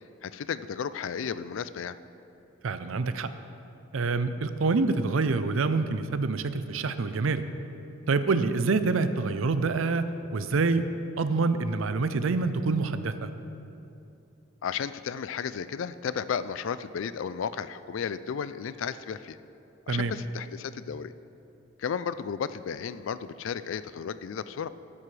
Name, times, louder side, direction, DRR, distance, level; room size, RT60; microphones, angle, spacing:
voice 1, 0.2-2.0 14.6-19.4 19.9-21.1 21.8-24.7, left 7 dB, 75° left, 14 dB, 0.4 m, -33 dB
voice 2, 2.6-3.3 3.9-7.4 8.1-10.9 11.2-13.3 19.9-20.1, right 3 dB, 80° right, 11 dB, 0.5 m, -26 dB
12.0 x 11.0 x 3.3 m, 2.9 s
head